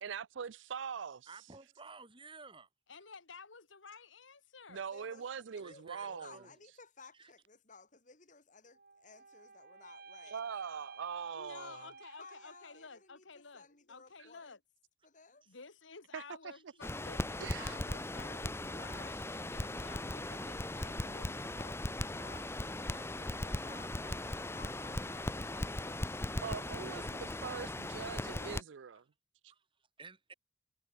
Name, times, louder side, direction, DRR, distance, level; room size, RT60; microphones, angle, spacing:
voice 1, 0.0-1.2 4.7-6.4 10.3-11.9 16.1-16.5 17.4-17.8 26.4-29.0, right 6 dB, 75° right, 0.5 m, -42 dB
voice 2, 1.3-2.7 5.6-6.5 7.2-7.3 16.5-16.6 17.3-17.4 19.6-20.1 23.5-23.6 26.6-26.8 29.5-29.6 30.0-30.3, right 4 dB, 25° right, 3.9 m, -54 dB
voice 3, 2.9-4.8 10.2-10.3 11.3-14.6 15.5-25.7, left 4 dB, 80° left, 1.9 m, -54 dB
voice 4, 4.7-10.4 11.5-14.5 15.0-15.5 24.4-26.9, left 4 dB, 40° left, 4.0 m, -58 dB
sound 1, 8.7-13.0, right 4 dB, 50° right, 7.6 m, -54 dB
Crackle, 16.8-28.6, left 1 dB, 15° left, 1.1 m, -38 dB
head